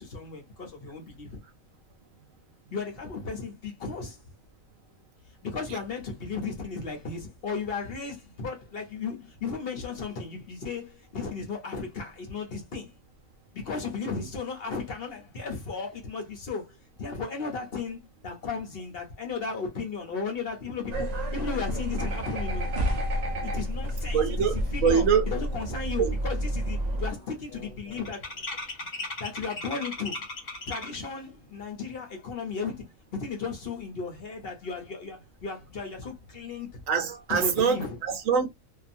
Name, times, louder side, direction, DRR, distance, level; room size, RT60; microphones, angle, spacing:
voice 1, 0.0-1.4 2.7-4.2 5.2-12.9 13.5-22.7 23.4-28.3 29.2-30.3 30.7-36.8 37.3-38.0, left 5 dB, 50° left, 0.8 m, -35 dB
sound 1, 20.9-27.1, equal, 50° right, 0.5 m, -30 dB
voice 2, 24.1-24.5 24.8-25.2 26.0-26.1 36.9-37.8 38.0-38.5, right 7 dB, 75° right, 1.1 m, -23 dB
sound 2, 25.5-25.6 25.9-26.3 26.6-31.2, left 2 dB, 35° left, 1.0 m, -38 dB
2.7 x 2.4 x 2.5 m
omnidirectional pair, 1.4 m